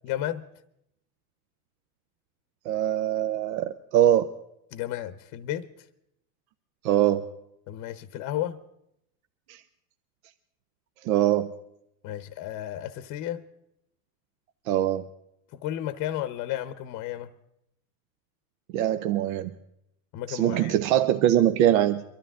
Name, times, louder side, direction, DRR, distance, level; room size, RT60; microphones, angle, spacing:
voice 1, 0.0-0.4 4.7-5.7 7.7-8.6 12.0-13.4 15.6-17.3 20.1-20.7, left 12 dB, 45° left, 13 dB, 0.8 m, -33 dB
voice 2, 2.6-4.3 6.8-7.2 9.5-9.6 11.0-11.5 14.7-15.0 18.7-19.5 20.3-22.0, right 12 dB, 70° right, 9 dB, 0.8 m, -22 dB
24.0 x 12.5 x 3.7 m, 0.78 s
supercardioid pair, 125°, 42 cm